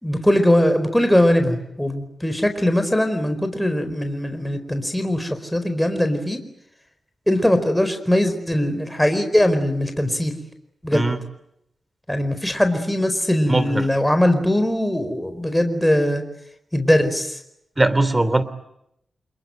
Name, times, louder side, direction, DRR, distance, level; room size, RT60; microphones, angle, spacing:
voice 1, 0.0-6.4 7.3-10.3 10.8-11.0 12.1-16.2 16.7-17.4, left 1 dB, 5° left, 8 dB, 4.7 m, -20 dB
voice 2, 13.5-13.9 17.8-18.4, right 2 dB, 20° right, 15 dB, 3.1 m, -20 dB
27.5 x 22.5 x 9.2 m, 0.79 s
cardioid pair, 55°, 0 cm